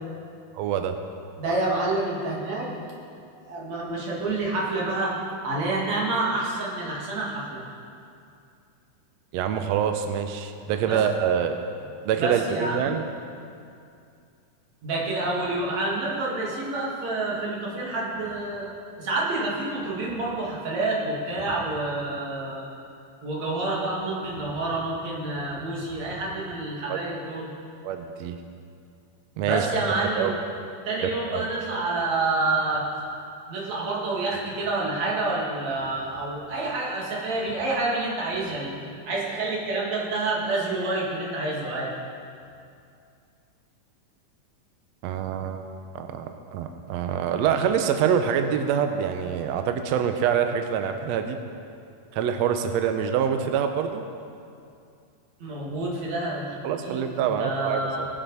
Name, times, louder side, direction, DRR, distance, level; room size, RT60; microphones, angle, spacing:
voice 1, 0.5-0.9 9.3-11.6 12.0-13.0 26.9-27.0 27.8-28.4 29.4-29.7 30.1-30.3 31.0-31.5 45.0-45.7 45.9-51.4 52.1-54.0 56.6-58.1, right 8 dB, 85° right, 6 dB, 1.5 m, -25 dB
voice 2, 1.4-2.7 3.5-7.6 10.9-11.0 12.2-12.8 14.8-18.7 19.0-22.6 23.2-27.5 29.4-30.3 30.8-32.8 33.5-38.7 39.0-41.9 55.4-56.5 56.8-58.1, right 2 dB, 60° right, -5 dB, 3.2 m, -28 dB
20.0 x 7.5 x 4.1 m, 2.4 s
omnidirectional pair, 3.7 m